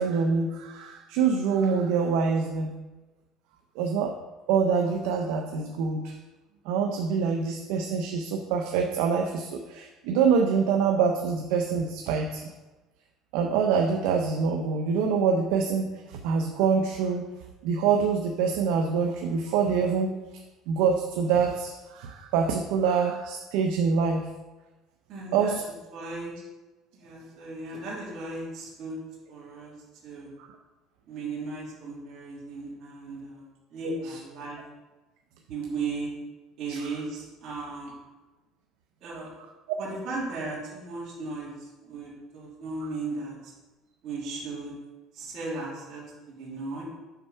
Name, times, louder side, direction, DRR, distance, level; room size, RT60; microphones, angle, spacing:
voice 1, 0.0-2.7 3.8-4.1 4.5-6.1 6.7-12.4 13.3-17.3 17.6-20.1 20.7-24.3 25.3-25.6 33.8-34.2 36.7-36.8, right 6 dB, 85° right, 3 dB, 0.6 m, -25 dB
voice 2, 25.1-25.5 25.9-26.3 26.9-29.0 29.3-29.7 30.0-30.3 31.1-34.6 35.5-36.1 36.6-37.9 39.0-39.3 39.8-41.5 41.8-43.5 44.0-44.7 45.1-46.8, right 3 dB, 55° right, -6 dB, 2.5 m, -36 dB
5.8 x 4.5 x 5.5 m, 1.1 s
cardioid pair, 130°, 0 cm